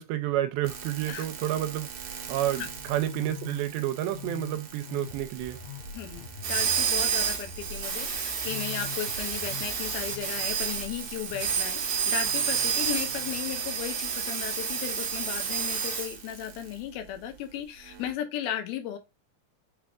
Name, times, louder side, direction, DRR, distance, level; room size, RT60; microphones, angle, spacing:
voice 1, 0.0-1.9 2.3-5.6, right 13 dB, 85° right, 2.4 m, -30 dB
sound 1, 0.7-16.6 18.0-18.1, right 7 dB, 65° right, 1.7 m, -31 dB
Musical instrument, 2.5-14.2, left 7 dB, 65° left, 2.1 m, -45 dB
voice 2, 5.9-19.0, left 10 dB, 85° left, 2.7 m, -36 dB
6.2 x 3.4 x 2.4 m
omnidirectional pair, 4.2 m